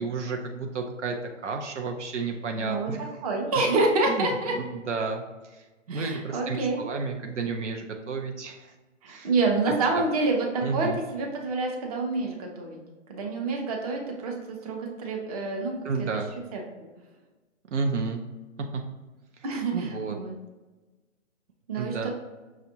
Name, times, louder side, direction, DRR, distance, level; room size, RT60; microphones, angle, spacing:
voice 1, 0.0-3.1 4.1-8.7 9.1-9.3 9.7-9.8 10.6-11.0 15.8-16.3 17.7-18.2 18.6-18.8 19.4-19.5 19.7-20.2 21.8-22.1, right 4 dB, 65° right, 3 dB, 0.6 m, -32 dB
voice 2, 2.6-2.9 3.2-4.5 5.9-6.8 9.0-12.8 13.1-15.7 16.0-16.1 16.5-16.6 19.4-20.3 21.7-22.1, right 3 dB, 30° right, 0 dB, 0.7 m, -27 dB
5.8 x 2.5 x 2.7 m, 1.2 s
figure-of-eight pair, 135°, 38 cm